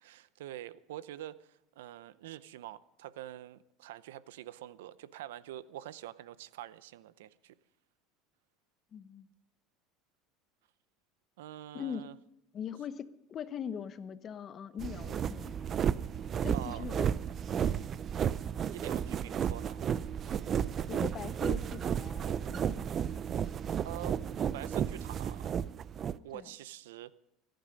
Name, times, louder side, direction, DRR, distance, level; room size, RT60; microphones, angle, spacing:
voice 1, 0.0-7.5 11.4-12.1 16.5-16.8 18.6-19.9 23.8-24.2 24.5-25.5 26.2-27.1, right 13 dB, 90° right, 0.7 m, -45 dB
voice 2, 8.9-9.3 11.7-12.0 12.5-15.6 16.4-17.1 17.6-17.9 20.9-22.9 26.3-26.5, left 8 dB, 40° left, 1.0 m, -41 dB
sound 1, 14.8-26.2, right 8 dB, 35° right, 0.5 m, -33 dB
23.0 x 10.5 x 5.3 m
supercardioid pair, 110°, 0 cm